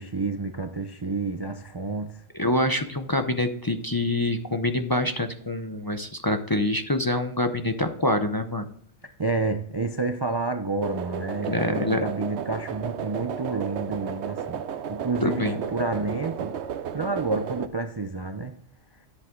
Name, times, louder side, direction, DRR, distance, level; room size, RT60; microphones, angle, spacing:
voice 1, 0.0-2.2 9.2-16.6 16.9-18.6, right 3 dB, 30° right, 0.5 m, -29 dB
voice 2, 2.3-8.7 11.4-12.0 15.2-15.5, left 1 dB, 25° left, 0.6 m, -26 dB
sound 1, 10.8-17.7, right 7 dB, 80° right, 1.0 m, -33 dB
10.5 x 8.0 x 3.8 m
omnidirectional pair, 1.1 m